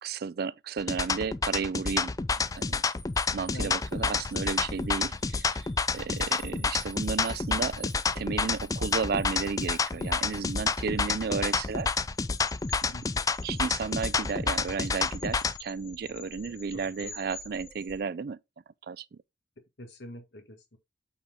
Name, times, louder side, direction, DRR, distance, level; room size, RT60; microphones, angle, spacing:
voice 1, 0.0-2.1 2.6-2.9 3.3-5.7 5.9-7.9 8.1-11.9 13.4-18.4 18.9-19.2, right 5 dB, 55° right, 0.4 m, -33 dB
sound 1, 0.8-15.6, left 4 dB, 20° left, 0.4 m, -29 dB
sound 2, 2.3-18.0, left 2 dB, 35° left, 2.5 m, -49 dB
voice 2, 3.5-4.1 12.9-13.3 16.7-17.2 19.8-20.8, left 1 dB, 70° left, 1.9 m, -45 dB
8.6 x 4.2 x 3.6 m
head